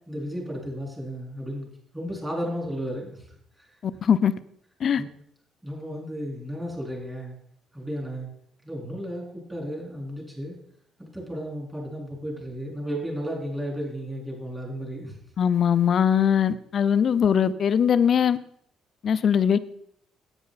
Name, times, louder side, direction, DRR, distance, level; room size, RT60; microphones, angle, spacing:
voice 1, 0.1-1.7 1.9-3.7 5.0-5.1 5.6-7.4 7.7-8.3 8.6-10.6 11.0-15.2, equal, 10° right, -2 dB, 3.8 m, -34 dB
voice 2, 3.8-4.3 4.8-5.0 15.4-18.4 19.0-19.6, left 8 dB, 45° left, 14 dB, 0.5 m, -21 dB
10.5 x 8.8 x 4.1 m, 0.68 s
cardioid pair, 125°, 0 cm